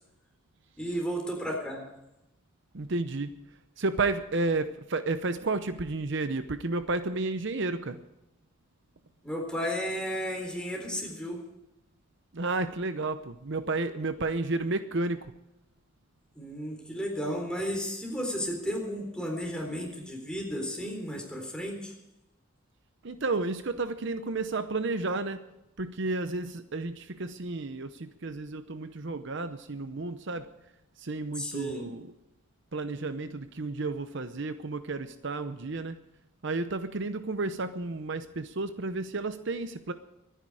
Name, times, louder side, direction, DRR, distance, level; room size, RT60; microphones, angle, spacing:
voice 1, 0.8-1.8 9.2-11.4 16.4-21.9 31.3-31.9, equal, 5° left, 1 dB, 3.9 m, -33 dB
voice 2, 2.7-3.3 3.8-8.0 12.3-15.3 23.0-25.4 25.8-30.5 31.0-32.1 32.7-36.0 36.4-39.9, right 3 dB, 60° right, 10 dB, 0.8 m, -32 dB
24.0 x 10.0 x 4.9 m, 0.90 s
head